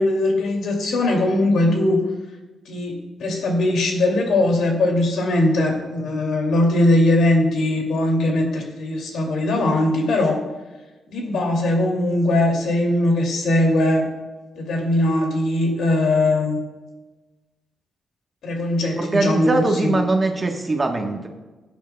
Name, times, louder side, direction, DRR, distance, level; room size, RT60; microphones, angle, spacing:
voice 1, 0.0-2.0 2.7-10.4 11.1-14.1 14.6-16.6 18.4-20.0, left 1 dB, 80° left, 1 dB, 2.5 m, -20 dB
voice 2, 19.0-21.3, right 2 dB, 25° right, 3 dB, 1.2 m, -21 dB
16.0 x 9.2 x 2.3 m, 1.2 s
cardioid pair, 115°, 0 cm